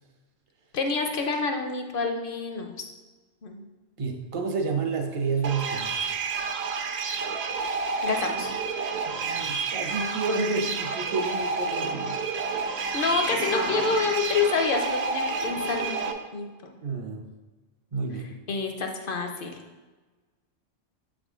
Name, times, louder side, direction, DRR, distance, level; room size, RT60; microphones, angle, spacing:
voice 1, 0.7-2.9 3.4-3.6 8.0-8.5 12.6-16.5 18.5-19.6, left 4 dB, 55° left, 4 dB, 0.6 m, -28 dB
voice 2, 4.0-6.1 9.0-12.2 16.8-17.3 17.9-18.3, right 4 dB, 40° right, 4 dB, 0.5 m, -30 dB
sound 1, 5.0-6.5 10.0-10.1 10.6-10.7 10.9-14.7, left 3 dB, 80° left, 1.2 m, -42 dB
sound 2, 5.4-16.1, right 4 dB, 65° right, 0.8 m, -30 dB
7.7 x 3.6 x 3.6 m, 1.3 s
omnidirectional pair, 1.3 m